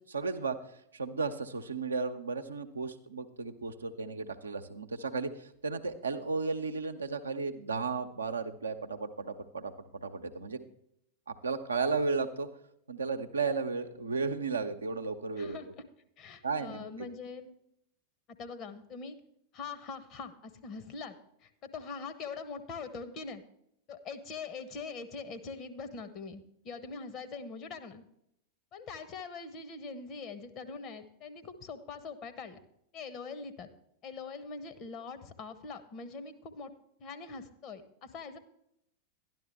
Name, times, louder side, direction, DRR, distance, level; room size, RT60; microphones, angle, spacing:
voice 1, 0.1-10.6 11.3-12.5 12.9-15.6 16.4-17.1, right 4 dB, 80° right, 6 dB, 0.7 m, -34 dB
voice 2, 15.4-15.7 16.2-17.5 18.4-19.2 19.5-21.1 21.4-23.4 23.9-28.0 28.7-32.6 32.9-33.7 34.0-36.7 37.0-38.4, left 4 dB, 40° left, 9 dB, 1.1 m, -43 dB
12.0 x 10.5 x 3.5 m, 0.77 s
figure-of-eight pair, 90°, 0 cm